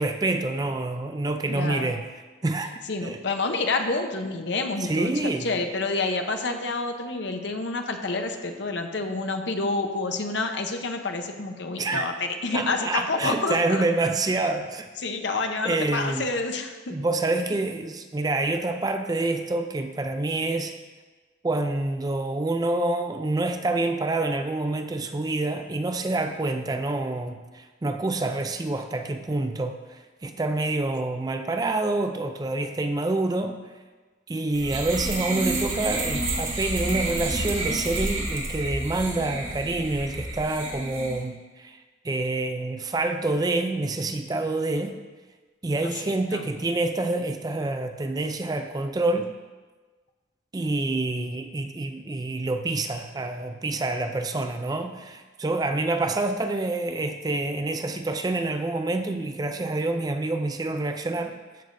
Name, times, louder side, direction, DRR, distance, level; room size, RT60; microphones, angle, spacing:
voice 1, 0.0-2.1 2.4-2.7 3.0-3.2 4.8-5.6 11.8-12.1 12.5-14.9 15.6-16.3 16.9-20.7 21.4-33.6 34.3-41.8 42.0-45.0 45.6-49.3 50.5-61.4, right 2 dB, 20° right, 7 dB, 0.4 m, -27 dB
voice 2, 1.5-1.9 2.9-13.8 15.0-17.0 45.8-46.4, left 3 dB, 65° left, 5 dB, 0.8 m, -28 dB
sound 1, 34.5-41.2, right 2 dB, 90° right, 2.4 m, -30 dB
13.5 x 7.1 x 2.6 m, 1.3 s
head